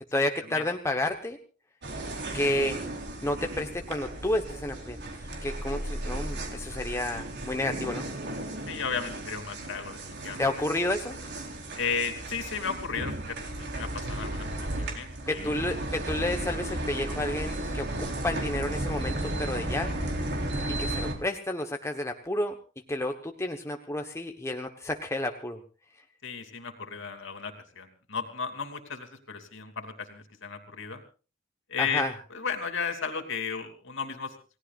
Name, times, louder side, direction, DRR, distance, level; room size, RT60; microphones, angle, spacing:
voice 1, 0.1-1.4 2.3-2.8 3.2-5.0 5.4-8.1 10.4-11.2 15.3-19.9 20.8-22.6 22.9-25.6 31.8-32.1, left 1 dB, 15° left, 4 dB, 1.1 m, -30 dB
sound 1, 1.8-21.1, right 1 dB, 55° right, 3.8 m, -34 dB
voice 2, 8.7-10.5 11.8-13.4 13.7-14.5 14.8-15.6 26.2-31.0 31.7-32.0 32.3-34.3, left 5 dB, 65° left, 6 dB, 3.0 m, -34 dB
29.0 x 18.0 x 2.5 m, 0.35 s
head